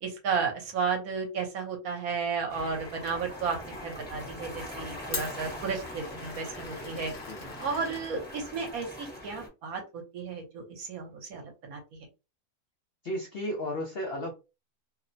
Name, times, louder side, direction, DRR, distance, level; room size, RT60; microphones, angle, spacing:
voice 1, 0.0-7.1 7.6-11.8, right 5 dB, 70° right, 1.2 m, -33 dB
Glass, 2.5-8.8, left 5 dB, 55° left, 0.8 m, -44 dB
sound 1, 2.5-9.5, left 1 dB, 10° left, 0.6 m, -42 dB
voice 2, 5.0-5.4 7.2-7.5 13.0-14.3, equal, 85° left, 0.5 m, -35 dB
2.9 x 2.0 x 2.5 m
omnidirectional pair, 1.7 m